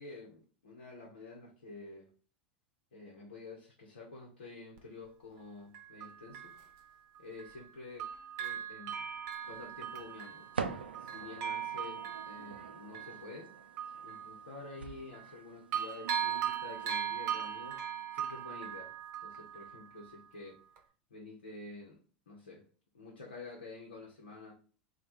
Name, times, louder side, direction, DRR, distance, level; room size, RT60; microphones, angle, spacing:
voice 1, 0.0-2.1 2.9-6.6 7.2-8.0 8.4-9.0 9.5-13.5 14.0-17.8 18.1-18.9 19.2-20.6 21.1-22.0 22.3-22.6 22.9-24.5, left 3 dB, 80° left, 0.8 m, -49 dB
Bell, 4.8-4.9 5.7-7.7 8.0-15.4 15.7-20.3 20.8-20.9, right 9 dB, 50° right, 0.7 m, -40 dB
sound 1, 9.4-18.3, right 5 dB, 85° right, 0.4 m, -46 dB
3.3 x 2.2 x 4.3 m
hypercardioid pair, 85°, 5 cm